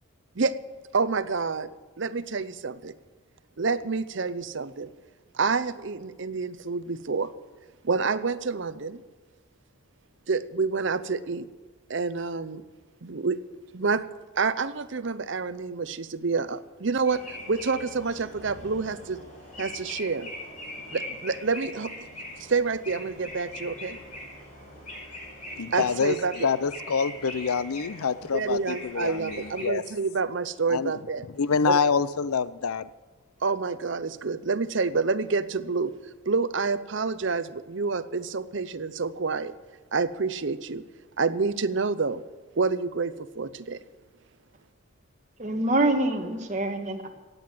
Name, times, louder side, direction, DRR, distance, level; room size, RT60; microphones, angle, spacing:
voice 1, 0.9-1.7 2.0-3.0 3.6-4.9 5.3-7.3 7.8-9.0 10.3-11.5 11.9-12.6 13.0-13.4 13.7-14.0 14.4-19.2 19.6-20.3 20.9-21.9 22.4-24.0 25.7-26.5 28.3-31.2 31.7-31.8 33.4-35.9 36.3-39.5 39.9-40.8 41.2-42.2 42.6-43.8, right 4 dB, 55° right, 14 dB, 0.6 m, -28 dB
sound 1, 17.1-29.6, left 1 dB, 35° left, 5.4 m, -41 dB
voice 2, 25.6-29.8 30.7-30.9 31.4-32.9, left 5 dB, 85° left, 17 dB, 0.6 m, -26 dB
voice 3, 45.4-47.1, right 2 dB, 35° right, 3 dB, 1.5 m, -25 dB
16.0 x 9.5 x 7.6 m, 1.3 s
head